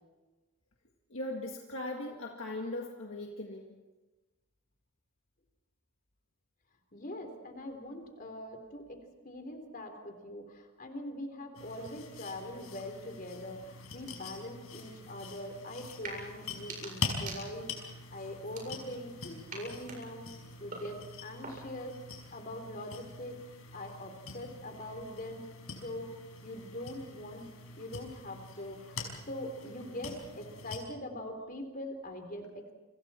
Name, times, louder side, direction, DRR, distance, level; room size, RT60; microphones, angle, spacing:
voice 1, 1.1-3.8, left 1 dB, 65° left, 1 dB, 1.9 m, -39 dB
voice 2, 6.9-17.7 18.1-20.3 20.6-21.9 22.3-23.4 23.7-25.4 25.8-26.1 26.4-27.5 27.8-29.0 29.3-32.7, left 1 dB, 40° left, 5 dB, 3.7 m, -42 dB
sound 1, 11.5-30.8, left 4 dB, 80° left, 5.4 m, -44 dB
sound 2, 16.0-16.2 16.5-17.8 18.4-19.1 19.5-21.8, right 3 dB, 40° right, 7.8 m, -46 dB
30.0 x 26.0 x 4.4 m, 1.1 s
head